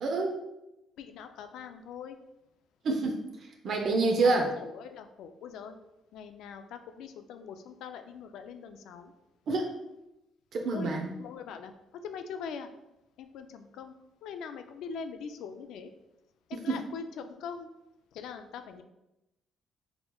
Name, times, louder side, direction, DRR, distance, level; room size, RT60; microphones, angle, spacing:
voice 1, 0.0-0.4 2.8-3.2 3.6-4.5 9.5-9.7 10.5-11.2 16.5-16.9, right 3 dB, 60° right, 1 dB, 0.5 m, -27 dB
voice 2, 1.0-2.2 4.2-4.3 4.9-5.7 6.1-6.6 7.0-9.1 10.7-10.9 11.2-11.7 12.0-12.7 13.2-13.9 14.2-15.9 16.6-17.7 18.2-18.8, left 6 dB, 85° left, 8 dB, 0.3 m, -42 dB
4.0 x 3.0 x 2.2 m, 0.91 s
cardioid pair, 95°, 0 cm